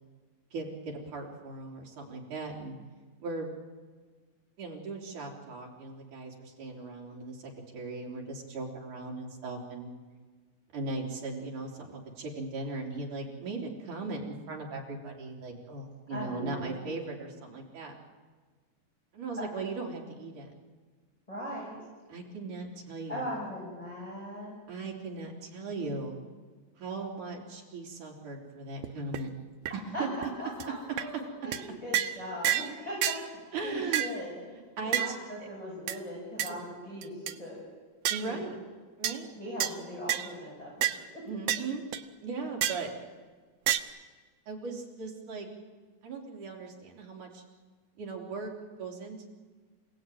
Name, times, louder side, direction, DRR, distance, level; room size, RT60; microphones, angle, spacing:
voice 1, 0.5-2.8 3.2-3.5 4.6-9.9 10.7-17.9 19.1-20.5 22.1-23.3 24.7-26.2 26.8-29.3 29.7-30.1 33.5-34.0 34.8-35.1 36.5-36.6 38.1-38.5 39.0-39.3 41.3-41.9 42.2-42.9 44.5-45.5 46.0-47.4 48.0-48.5 48.8-49.3, right 3 dB, 60° right, -1 dB, 4.8 m, -38 dB
voice 2, 16.1-16.9 19.4-19.5 21.3-21.7 23.1-24.6 29.9-30.0 30.4-37.6 38.2-38.6 39.4-41.2, equal, 10° left, -5 dB, 7.1 m, -40 dB
sound 1, 28.8-28.9 29.1-29.2 29.7-29.8 30.2-30.3 30.6-30.7 31.0-31.1 31.5-31.6 31.9-32.2 32.4-32.7 33.0-33.2 33.9-34.2 34.9-35.1 35.9-36.0 36.4-36.5 37.0-37.3 38.0-38.3 39.0-39.2 39.6-39.7 40.1-40.3 40.8-41.0 41.5-41.6 41.9-42.0 42.6-42.9 43.7-43.8, right 12 dB, 75° right, 2.4 m, -29 dB
28.0 x 17.5 x 9.2 m, 1.4 s
omnidirectional pair, 4.2 m